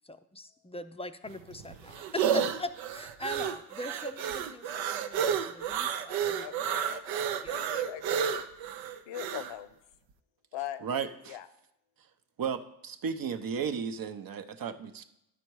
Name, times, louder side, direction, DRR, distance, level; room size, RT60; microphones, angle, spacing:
voice 1, 0.0-7.6, left 2 dB, 15° left, 9 dB, 0.4 m, -42 dB
sound 1, 1.3-9.5, right 8 dB, 85° right, 0.7 m, -31 dB
voice 2, 6.4-8.5 9.1-9.8 10.5-10.8 11.3-11.5, left 12 dB, 75° left, 13 dB, 0.7 m, -41 dB
voice 3, 10.8-11.4 12.4-15.0, right 6 dB, 50° right, 10 dB, 0.7 m, -34 dB
11.0 x 4.3 x 4.7 m, 0.84 s
supercardioid pair, 70°, 45 cm